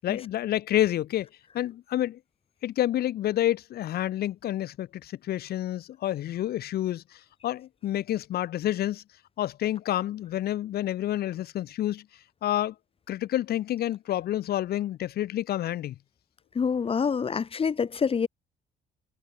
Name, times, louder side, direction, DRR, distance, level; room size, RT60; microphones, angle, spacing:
voice 1, 0.0-1.3 1.5-2.2 2.6-9.0 9.4-12.0 12.4-12.7 13.1-15.9, left 13 dB, 65° left, 7.9 m, -29 dB
voice 2, 16.6-18.3, left 6 dB, 35° left, 4.2 m, -26 dB
cardioid pair, 110°, 17 cm